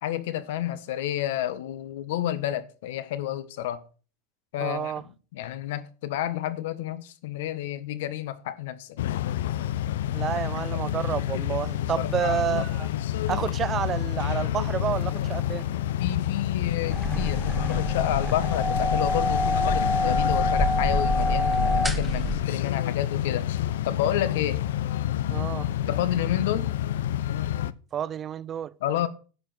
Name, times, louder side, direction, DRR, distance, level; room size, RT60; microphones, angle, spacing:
voice 1, 0.0-3.8 4.5-4.9 5.3-9.0 10.7-10.8 11.8-12.4 16.0-23.5 23.8-24.6 25.9-26.7 28.8-29.1, left 12 dB, 65° left, 1.4 m, -30 dB
voice 2, 4.6-5.0 10.1-12.9 13.3-15.7 25.3-25.7 27.9-28.7, right 9 dB, 20° right, 0.5 m, -30 dB
sound 1, 9.0-27.7, left 12 dB, 90° left, 0.6 m, -28 dB
sound 2, 14.4-21.5, left 3 dB, 25° left, 2.4 m, -52 dB
sound 3, 16.9-22.4, left 1 dB, ahead, 1.0 m, -26 dB
10.5 x 7.4 x 5.9 m
supercardioid pair, 170°, 0 cm